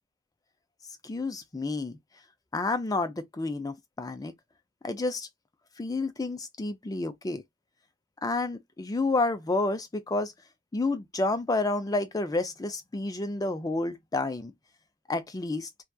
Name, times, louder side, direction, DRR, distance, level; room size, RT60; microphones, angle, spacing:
voice 1, 1.0-2.0 2.5-4.3 4.8-5.3 5.8-7.4 8.2-10.3 10.7-14.5 15.1-15.7, left 2 dB, 15° left, 0.3 m, -30 dB
2.7 x 2.2 x 2.2 m
head